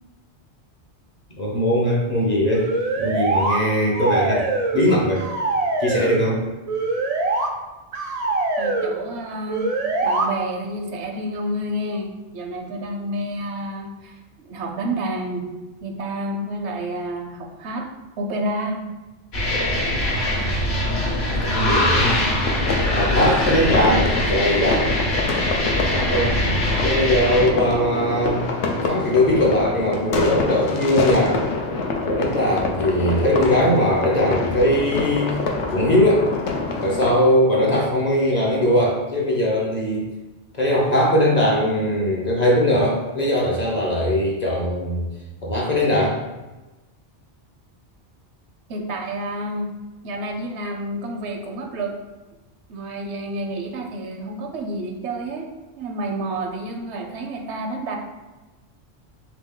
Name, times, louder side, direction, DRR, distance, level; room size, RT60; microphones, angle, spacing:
voice 1, 1.4-2.7 3.0-5.3 5.8-6.4 21.3-22.2 22.9-24.9 25.9-26.4 26.8-31.4 32.0-35.3 35.7-36.3 36.7-40.1 40.5-45.0 45.4-46.2, left 1 dB, 40° left, -3 dB, 0.7 m, -20 dB
sound 1, 2.5-3.6 3.9-4.9 5.2-6.2 6.7-7.5 7.9-8.9 9.5-10.3, right 2 dB, 60° right, 0.4 m, -23 dB
voice 2, 8.6-9.7 10.0-15.5 15.8-17.9 18.2-18.9 48.7-49.7 50.0-51.9 52.7-55.5 55.8-58.0, right 1 dB, 75° right, 2 dB, 0.9 m, -29 dB
sound 2, 19.3-27.5, left 1 dB, 65° left, 1.2 m, -22 dB
sound 3, 22.4-37.1, left 3 dB, 85° left, 0.9 m, -26 dB
3.7 x 2.9 x 3.7 m, 1.1 s
omnidirectional pair, 1.2 m